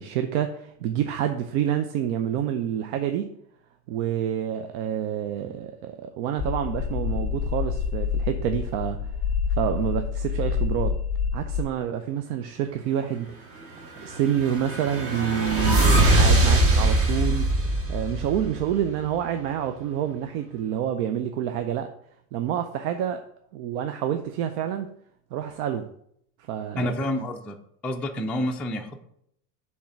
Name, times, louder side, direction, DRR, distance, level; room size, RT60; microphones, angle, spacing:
voice 1, 0.0-3.3 3.9-9.0 9.6-10.9 11.3-13.5 14.0-17.5 17.9-21.9 22.3-23.2 23.5-24.9 25.3-25.9 26.5-26.9, right 10 dB, 70° right, 7 dB, 0.7 m, -28 dB
sound 1, 6.4-11.6, left 6 dB, 30° left, 1.0 m, -27 dB
sound 2, 14.0-18.9, right 1 dB, 30° right, 1.3 m, -22 dB
voice 2, 26.8-27.6 27.8-29.0, left 1 dB, 5° left, 1 dB, 0.3 m, -28 dB
6.3 x 3.6 x 5.8 m, 0.71 s
supercardioid pair, 105°, 45 cm